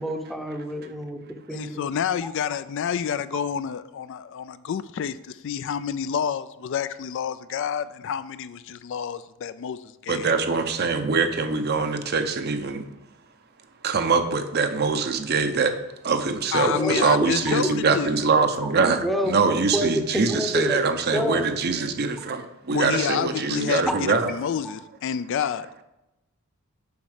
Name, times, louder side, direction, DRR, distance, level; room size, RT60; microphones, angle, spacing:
voice 1, 0.0-1.9 16.7-16.9 19.0-20.8 21.1-21.4, equal, ahead, 4 dB, 0.7 m, -28 dB
voice 2, 1.5-10.3 16.5-18.2 22.7-25.8, left 8 dB, 55° left, 14 dB, 0.3 m, -29 dB
voice 3, 10.1-12.9 13.8-15.8 16.0-24.3, right 4 dB, 45° right, 8 dB, 0.6 m, -23 dB
7.1 x 5.3 x 4.9 m, 0.93 s
head